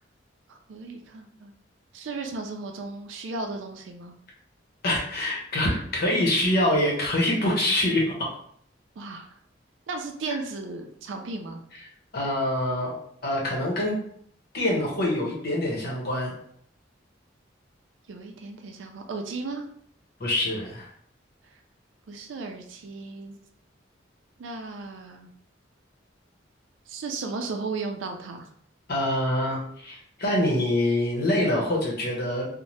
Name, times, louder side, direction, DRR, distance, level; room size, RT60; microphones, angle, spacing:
voice 1, 0.5-1.5 1.9-4.1 9.0-9.3 9.9-11.6 18.1-19.6 22.1-23.3 24.4-25.3 26.9-28.5, right 3 dB, 75° right, 4 dB, 0.4 m, -35 dB
voice 2, 4.8-8.3 10.3-10.4 11.8-11.9 12.1-13.0 13.2-13.9 14.5-16.3 20.2-20.9 28.9-32.5, left 1 dB, 55° left, -3 dB, 0.9 m, -25 dB
2.7 x 2.1 x 3.1 m, 0.65 s
head